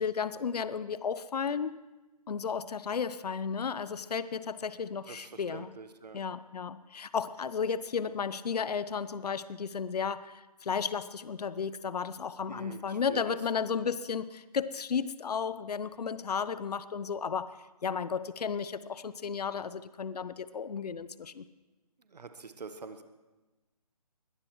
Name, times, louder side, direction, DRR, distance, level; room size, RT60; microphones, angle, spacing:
voice 1, 0.0-1.8 2.3-5.7 6.1-17.6 17.8-21.5, left 6 dB, 75° left, 15 dB, 0.7 m, -33 dB
voice 2, 5.1-6.2 12.5-13.4 22.1-23.0, right 4 dB, 80° right, 8 dB, 1.2 m, -45 dB
22.0 x 18.0 x 3.1 m, 1.2 s
hypercardioid pair, 155°, 21 cm